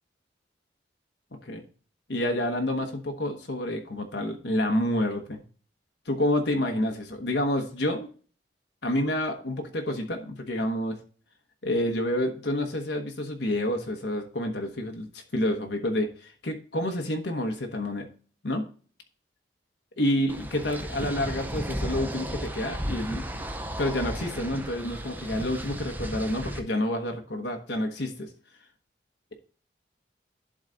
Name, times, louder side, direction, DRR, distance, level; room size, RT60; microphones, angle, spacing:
voice 1, 2.1-5.4 6.1-8.1 8.8-11.0 11.6-18.1 18.4-18.7 20.0-23.3 23.8-28.3, left 1 dB, 70° left, 3 dB, 1.1 m, -28 dB
sound 1, 20.3-26.6, right 1 dB, 10° right, 0.6 m, -34 dB
11.0 x 4.0 x 3.9 m, 0.41 s
head